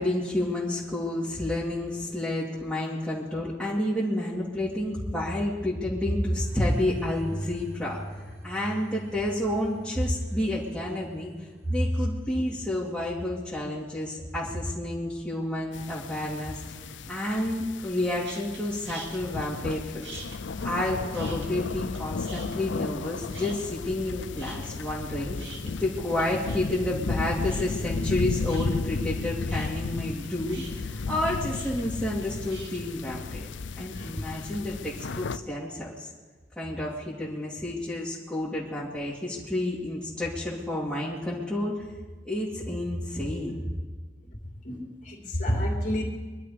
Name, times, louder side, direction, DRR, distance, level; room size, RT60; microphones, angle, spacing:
voice 1, 0.0-8.0 8.4-11.3 11.6-16.8 17.1-20.2 20.6-25.4 25.7-33.5 33.8-36.1 36.6-41.8 42.2-43.6, left 1 dB, 5° left, -9 dB, 2.5 m, -30 dB
sound 1, 6.3-14.4, equal, 20° right, 2.6 m, -44 dB
sound 2, 15.7-35.4, left 4 dB, 85° left, 0.6 m, -34 dB
sound 3, 18.2-18.6 18.9-19.8 20.0-22.0 22.2-23.1 23.3-24.1 24.4-32.8, right 3 dB, 70° right, 2.4 m, -45 dB
voice 2, 44.6-46.0, equal, 45° left, 1 dB, 3.0 m, -29 dB
24.0 x 11.5 x 5.1 m, 1.3 s
head